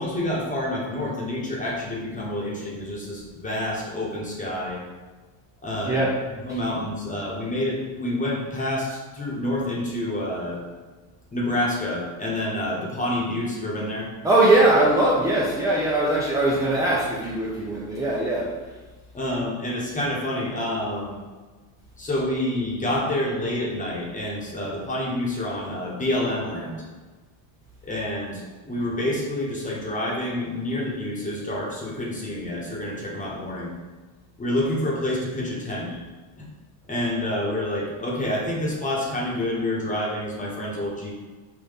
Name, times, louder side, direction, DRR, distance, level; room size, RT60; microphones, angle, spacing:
voice 1, 0.0-4.8 5.6-6.0 6.4-10.6 11.3-14.1 19.1-21.2 22.0-26.8 27.9-33.7 34.4-35.9 36.4-36.5 36.9-41.1, left 1 dB, 15° left, -3 dB, 1.1 m, -28 dB
voice 2, 14.2-18.5, right 2 dB, 5° right, -5 dB, 0.4 m, -21 dB
5.7 x 2.6 x 3.5 m, 1.3 s
cardioid pair, 120°, 48 cm